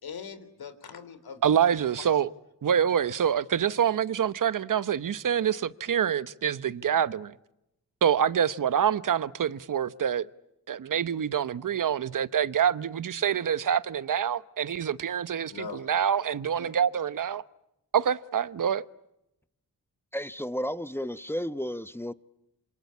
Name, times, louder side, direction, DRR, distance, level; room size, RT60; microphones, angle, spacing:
voice 1, 0.0-1.6 2.0-2.1 15.5-15.8 16.5-16.7, left 6 dB, 75° left, 3.5 m, -41 dB
voice 2, 1.4-2.3 2.6-7.3 8.0-10.3 10.7-17.4 17.9-18.8, right 8 dB, 60° right, 1.0 m, -26 dB
voice 3, 20.1-22.1, equal, 5° left, 1.0 m, -32 dB
27.0 x 25.5 x 8.6 m
cardioid pair, 70°, 37 cm